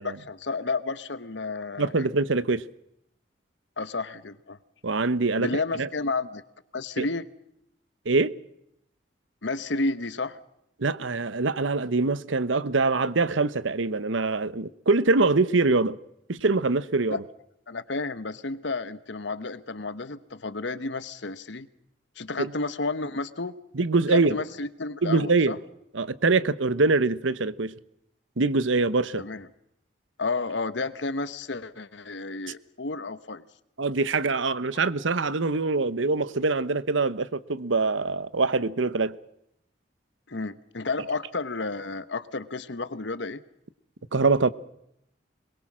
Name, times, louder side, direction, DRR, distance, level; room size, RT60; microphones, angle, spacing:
voice 1, 0.0-2.1 3.8-4.6 5.4-6.4 6.7-7.3 9.4-10.4 17.1-17.2 17.7-21.7 22.2-23.5 24.1-25.6 29.2-29.5 30.2-33.4 40.3-43.4, left 3 dB, 70° left, 1.1 m, -31 dB
voice 2, 1.8-2.6 4.8-5.5 5.8-5.9 7.0-7.1 8.0-8.3 10.8-16.0 16.3-17.2 22.4-22.5 23.7-24.4 25.0-25.6 25.9-27.7 28.4-29.2 33.8-39.2 44.1-44.5, right 3 dB, 90° right, 1.0 m, -24 dB
22.0 x 22.0 x 6.2 m
head